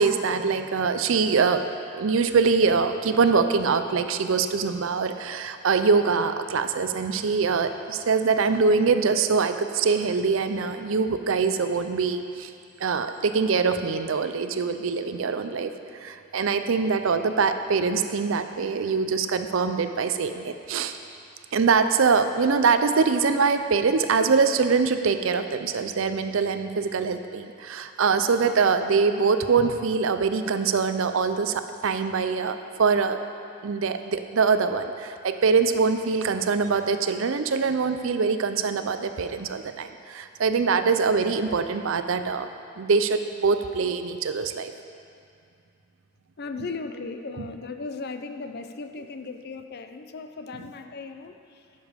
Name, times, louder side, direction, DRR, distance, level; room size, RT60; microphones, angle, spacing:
voice 1, 0.0-1.6 1.9-12.5 12.8-21.0 21.5-33.2 33.6-42.5 42.8-44.7 47.4-47.5, right 5 dB, 65° right, 9 dB, 0.5 m, -23 dB
voice 2, 46.4-51.6, left 3 dB, 50° left, 7 dB, 0.5 m, -37 dB
10.5 x 7.0 x 5.2 m, 2.4 s
head